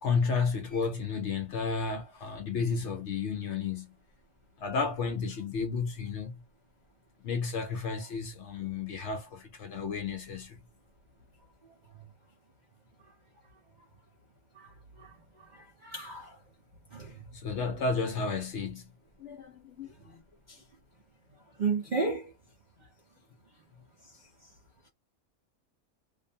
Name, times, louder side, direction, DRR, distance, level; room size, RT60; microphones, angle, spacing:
voice 1, 0.0-3.9 4.6-6.4 7.2-10.6 17.3-18.9 19.2-20.2, left 5 dB, 65° left, 0.7 m, -32 dB
voice 2, 15.5-16.4 16.9-17.1 21.6-22.3, right 4 dB, 60° right, 0.4 m, -32 dB
2.5 x 2.1 x 2.6 m
omnidirectional pair, 1.5 m